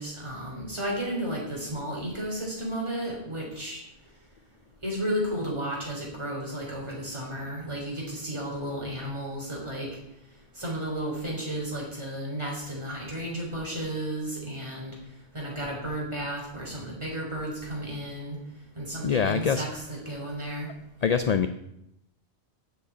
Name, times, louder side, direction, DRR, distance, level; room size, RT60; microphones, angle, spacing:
voice 1, 0.0-3.8 4.8-9.9 10.6-14.9 15.3-18.4 18.8-20.7, right 1 dB, 25° right, -3 dB, 3.7 m, -33 dB
voice 2, 19.0-19.6 21.0-21.5, left 6 dB, 50° left, 10 dB, 0.5 m, -24 dB
7.6 x 7.0 x 8.2 m, 0.82 s
omnidirectional pair, 1.1 m